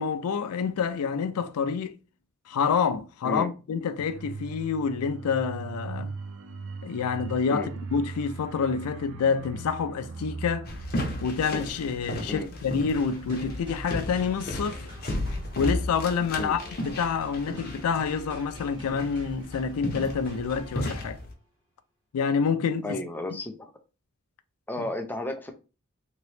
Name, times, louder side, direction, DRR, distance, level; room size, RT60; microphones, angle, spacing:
voice 1, 0.0-2.0 2.5-6.1 6.8-10.7 11.2-14.9 15.6-16.6 16.8-21.2 22.1-23.0, left 6 dB, 85° left, 0.4 m, -27 dB
sound 1, 4.0-16.3 16.6-16.8, right 3 dB, 60° right, 0.4 m, -41 dB
sound 2, 10.6-21.3, left 1 dB, 45° left, 0.8 m, -34 dB
sound 3, 12.9-21.3, left 1 dB, 25° right, 1.3 m, -48 dB
voice 2, 22.8-23.7 24.7-25.5, left 1 dB, 10° left, 0.4 m, -33 dB
2.9 x 2.9 x 3.2 m
head